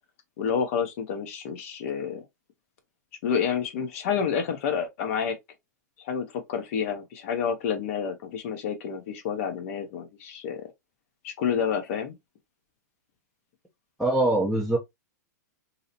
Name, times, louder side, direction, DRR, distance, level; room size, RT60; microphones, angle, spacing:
voice 1, 0.4-2.2 3.2-5.4 6.0-10.7 11.2-12.1, left 7 dB, 55° left, 0.6 m, -29 dB
voice 2, 14.0-14.8, right 2 dB, ahead, 0.4 m, -23 dB
2.7 x 2.0 x 2.7 m
hypercardioid pair, 125°, 9 cm